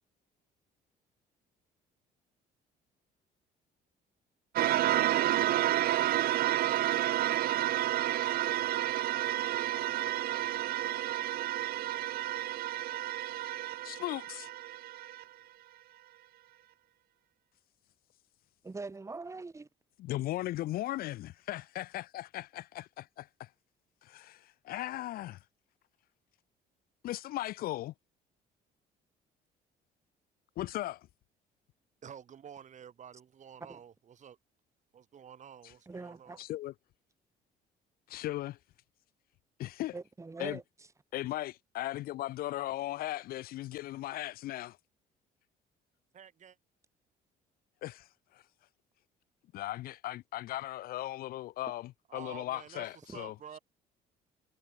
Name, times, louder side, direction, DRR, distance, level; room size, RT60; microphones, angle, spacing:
sound 1, 4.6-15.2, right 14 dB, 60° right, 0.8 m, -30 dB
voice 1, 13.8-14.5 20.0-23.5 24.0-25.4 27.0-27.9 30.6-31.1 35.6-35.7 36.4-36.7 38.1-38.6 39.6-39.9 40.4-40.6 41.1-44.8 47.8-48.4 49.5-53.4, left 15 dB, 60° left, 0.4 m, -37 dB
voice 2, 18.6-19.7 33.7-33.8 35.9-36.4 39.9-40.6 53.1-53.2, right 3 dB, 15° right, 2.1 m, -42 dB
voice 3, 32.0-34.4 34.9-36.4 46.1-46.6 52.1-53.6, right 8 dB, 45° right, 3.6 m, -50 dB
cardioid pair, 110°, 17 cm